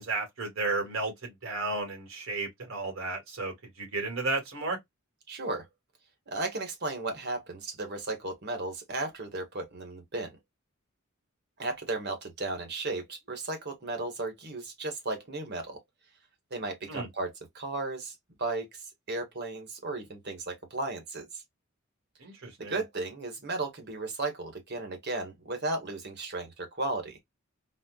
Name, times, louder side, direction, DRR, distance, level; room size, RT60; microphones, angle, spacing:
voice 1, 0.0-4.8 16.9-17.1 22.2-22.8, right 3 dB, 75° right, 1.8 m, -33 dB
voice 2, 5.3-5.6 6.3-10.4 11.6-15.8 16.5-21.4 22.6-27.2, right 2 dB, 55° right, 1.4 m, -35 dB
4.2 x 2.4 x 2.3 m
head